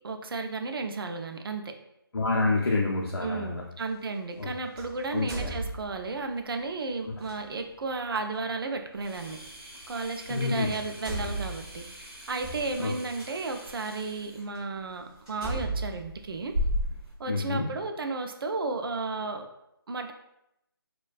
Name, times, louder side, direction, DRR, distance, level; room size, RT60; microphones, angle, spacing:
voice 1, 0.0-1.7 3.2-16.6 17.2-19.5 19.9-20.1, right 3 dB, 65° right, 5 dB, 0.4 m, -33 dB
voice 2, 2.1-3.6 4.4-4.5 5.1-5.5 10.3-10.7 12.8-12.9 17.3-17.7, left 3 dB, 80° left, -2 dB, 0.5 m, -27 dB
sound 1, 2.7-2.8 4.8-6.2 7.2-7.4 9.2-9.3 10.3-10.4 10.7-13.3 14.0-14.1 14.5-14.6 15.3-17.0, right 2 dB, 5° right, 0.4 m, -37 dB
sound 2, 8.9-17.1, left 1 dB, 85° right, 0.8 m, -38 dB
2.3 x 2.2 x 2.4 m, 0.81 s
figure-of-eight pair, 165°, 13 cm